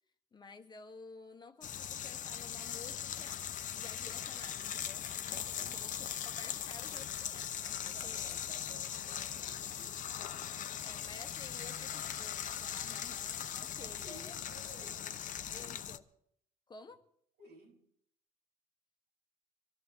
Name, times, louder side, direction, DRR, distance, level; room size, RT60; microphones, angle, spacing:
voice 1, 0.3-8.5 10.2-10.3 10.8-14.3 14.8-14.9 15.5-16.0 16.7-17.1, left 4 dB, 25° left, 1.1 m, -53 dB
sound 1, 1.6-16.0, left 9 dB, 50° left, 0.7 m, -40 dB
voice 2, 5.5-6.0 7.9-10.4 13.8-15.8 17.4-17.8, right 2 dB, 75° right, 4.0 m, -56 dB
24.0 x 13.0 x 3.7 m
cardioid pair, 110°, 17 cm